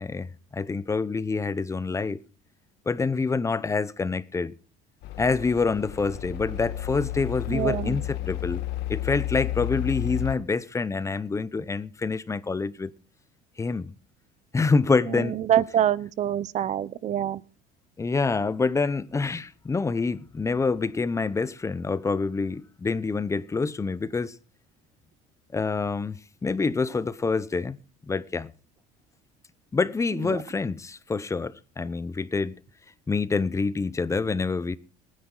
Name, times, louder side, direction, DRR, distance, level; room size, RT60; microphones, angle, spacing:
voice 1, 0.0-2.2 2.9-4.5 5.2-8.6 8.9-12.9 13.6-13.9 14.5-15.4 18.0-24.3 25.5-27.8 28.1-28.5 29.7-32.6 33.1-34.8, left 4 dB, 15° left, 0.7 m, -27 dB
sound 1, 5.0-10.4, left 14 dB, 70° left, 1.3 m, -32 dB
voice 2, 7.5-8.0 15.1-17.4 30.2-30.4, right 10 dB, 40° right, 0.6 m, -26 dB
21.5 x 9.7 x 3.8 m
cardioid pair, 110°, 18 cm